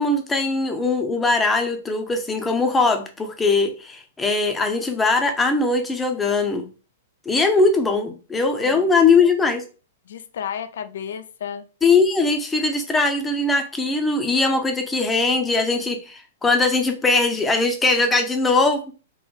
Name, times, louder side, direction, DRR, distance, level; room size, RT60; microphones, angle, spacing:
voice 1, 0.0-6.7 7.3-9.6 11.8-18.8, left 3 dB, 15° left, 0.8 m, -20 dB
voice 2, 8.6-9.1 10.1-11.7, left 8 dB, 70° left, 0.5 m, -33 dB
3.9 x 2.5 x 3.5 m
hypercardioid pair, 115°, 0 cm